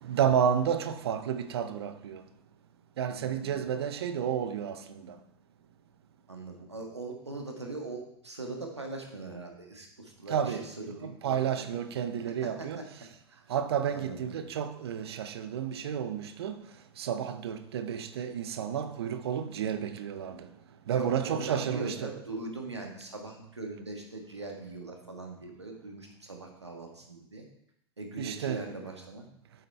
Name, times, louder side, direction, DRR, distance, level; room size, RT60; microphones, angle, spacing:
voice 1, 0.0-2.2 3.0-4.8 10.3-10.7 11.0-12.8 13.5-16.6 17.0-20.5 20.9-22.1 28.2-28.7, right 8 dB, 70° right, 0.7 m, -31 dB
voice 2, 6.3-11.4 12.4-12.8 13.9-14.2 20.9-27.4 28.0-29.2, right 2 dB, 90° right, 1.6 m, -41 dB
8.4 x 7.3 x 3.4 m
figure-of-eight pair, 85°, 14 cm